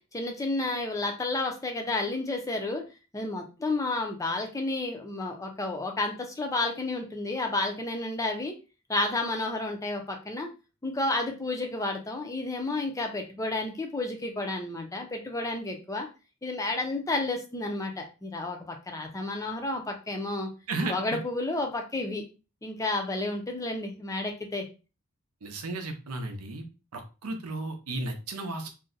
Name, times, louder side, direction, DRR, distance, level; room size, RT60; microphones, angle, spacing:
voice 1, 0.1-2.8 3.1-8.5 8.9-10.5 10.8-16.1 16.4-20.5 20.9-22.2 22.6-24.6, left 2 dB, 15° left, 3 dB, 0.5 m, -31 dB
voice 2, 25.4-26.6 26.9-28.7, right 2 dB, 85° right, 6 dB, 0.6 m, -34 dB
2.6 x 2.1 x 3.8 m, 0.32 s
head